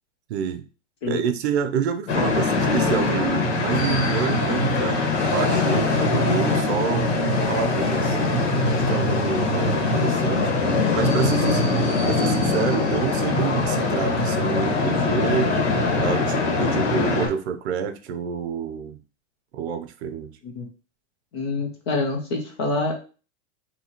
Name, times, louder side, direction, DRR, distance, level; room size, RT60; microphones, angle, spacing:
voice 1, 0.3-0.6 1.1-8.4 8.9-10.5 10.9-15.5 16.0-19.0 19.5-20.3, right 7 dB, 60° right, 0.6 m, -28 dB
sound 1, 2.1-17.3, left 3 dB, 65° left, 1.6 m, -22 dB
voice 2, 21.3-23.0, left 3 dB, 25° left, 0.4 m, -26 dB
4.0 x 2.8 x 2.9 m
supercardioid pair, 165°, 37 cm